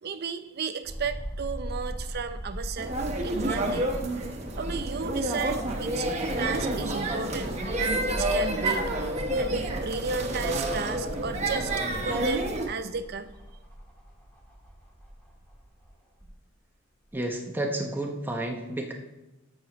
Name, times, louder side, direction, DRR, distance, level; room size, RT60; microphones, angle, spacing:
voice 1, 0.0-3.9 4.6-6.1 6.4-8.9 9.4-13.3, right 5 dB, 50° right, 10 dB, 0.5 m, -34 dB
sound 1, 0.8-5.9 6.3-6.4 7.8-16.3 17.1-17.2, equal, 5° left, 1.7 m, -42 dB
sound 2, 2.8-12.7, right 1 dB, 30° right, 1.1 m, -29 dB
voice 2, 17.1-18.9, right 1 dB, 10° right, 2 dB, 0.9 m, -31 dB
14.0 x 6.3 x 3.0 m, 1.0 s
head